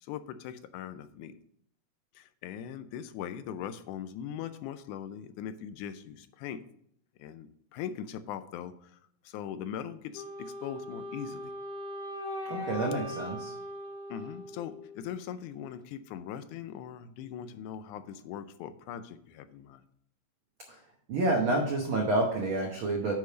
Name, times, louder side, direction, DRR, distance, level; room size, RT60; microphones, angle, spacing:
voice 1, 0.0-1.4 2.2-6.6 7.2-9.0 9.2-11.5 14.1-19.8, left 9 dB, 80° left, 11 dB, 1.9 m, -40 dB
Wind instrument woodwind instrument, 10.1-15.2, left 1 dB, 5° right, 0.8 m, -40 dB
voice 2, 12.5-13.5 20.7-20.8 21.1-23.1, right 2 dB, 75° right, 0 dB, 1.1 m, -29 dB
9.5 x 3.4 x 6.7 m, 0.67 s
omnidirectional pair, 3.8 m